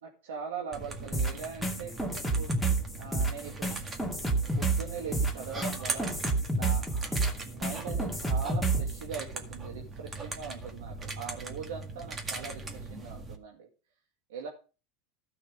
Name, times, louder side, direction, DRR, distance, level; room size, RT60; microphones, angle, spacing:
voice 1, 0.0-2.5 3.0-3.7 4.6-6.2 6.5-7.0 7.4-13.7 14.3-14.5, right 6 dB, 85° right, 1 dB, 2.1 m, -41 dB
sound 1, 0.7-13.4, right 3 dB, 25° right, 1.9 m, -40 dB
sound 2, 1.1-9.0, right 3 dB, ahead, 2.2 m, -29 dB
13.5 x 5.9 x 5.1 m, 0.33 s
supercardioid pair, 120°, 0 cm